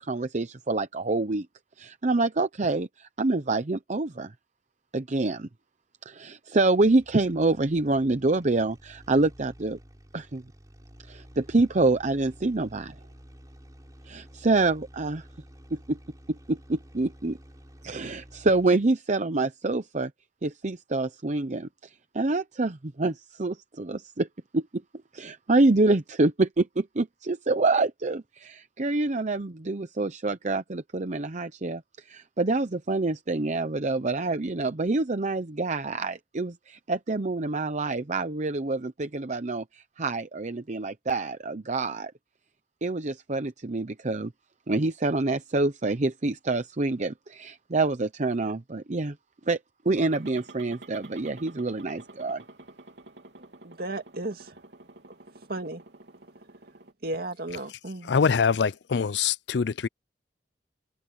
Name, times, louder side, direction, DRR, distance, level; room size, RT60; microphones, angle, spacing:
voice 1, 0.0-1.5 1.8-4.3 4.9-5.5 6.1-9.8 10.1-10.4 11.1-12.9 14.0-15.2 15.7-16.0 16.3-17.4 17.8-20.1 20.4-24.3 24.5-24.6 25.1-42.1 42.8-44.3 44.7-49.2 49.5-49.6 49.8-52.4, right 2 dB, 45° right, 0.8 m, -26 dB
sound 1, 6.8-18.9, equal, 20° right, 3.6 m, -51 dB
sound 2, 49.9-56.9, right 2 dB, 80° right, 3.2 m, -49 dB
voice 2, 53.6-54.6 55.5-55.8 57.0-58.1, right 2 dB, 60° right, 2.3 m, -34 dB
voice 3, 58.0-59.9, left 6 dB, 75° left, 0.5 m, -24 dB
head